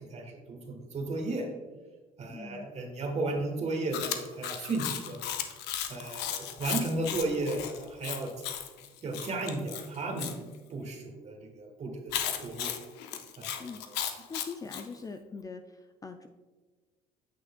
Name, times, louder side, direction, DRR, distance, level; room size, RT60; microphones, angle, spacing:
voice 1, 0.0-1.5 2.2-5.2 5.9-8.3 9.0-10.4 10.7-12.7 13.4-14.2, right 2 dB, 40° right, 2 dB, 1.3 m, -34 dB
voice 2, 2.3-2.7 13.6-16.3, left 4 dB, 20° left, 7 dB, 0.3 m, -43 dB
Chewing mastication, 3.9-10.4 12.1-14.9, left 10 dB, 90° left, 0.6 m, -36 dB
8.4 x 6.2 x 2.2 m, 1.3 s
cardioid pair, 110°, 17 cm